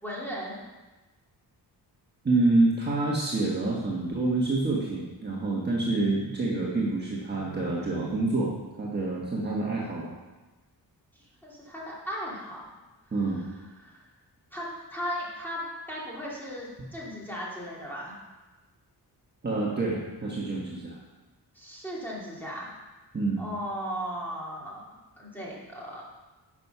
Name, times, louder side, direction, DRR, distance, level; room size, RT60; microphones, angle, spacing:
voice 1, 0.0-0.6 11.1-12.6 13.8-14.1 14.5-15.6 15.9-18.1 21.5-22.7 23.4-26.0, equal, 5° left, -6 dB, 2.5 m, -37 dB
voice 2, 2.2-10.1 13.1-13.4 19.4-21.0 23.1-23.4, right 2 dB, 25° right, -5 dB, 1.3 m, -27 dB
10.5 x 6.1 x 5.5 m, 1.2 s
wide cardioid pair, 165°, 40 cm